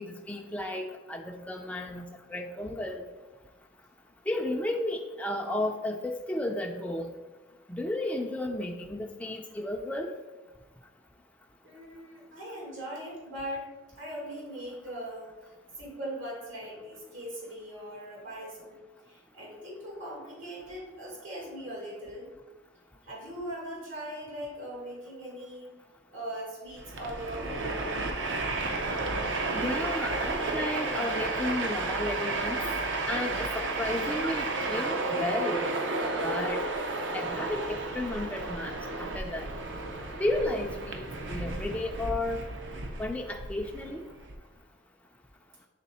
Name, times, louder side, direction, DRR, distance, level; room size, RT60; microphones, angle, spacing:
voice 1, 0.0-3.0 4.3-7.1 7.7-10.1 29.5-32.6 33.1-35.6 36.2-36.6 37.1-38.7 39.0-39.5 40.2-42.4 43.0-44.0, left 1 dB, 5° left, 1 dB, 0.4 m, -33 dB
voice 2, 11.6-13.7 14.0-22.3 23.1-25.7 26.1-27.8, equal, 85° right, -4 dB, 2.0 m, -40 dB
Train, 26.7-44.3, right 2 dB, 70° right, 0.6 m, -32 dB
7.4 x 3.4 x 4.1 m, 1.2 s
head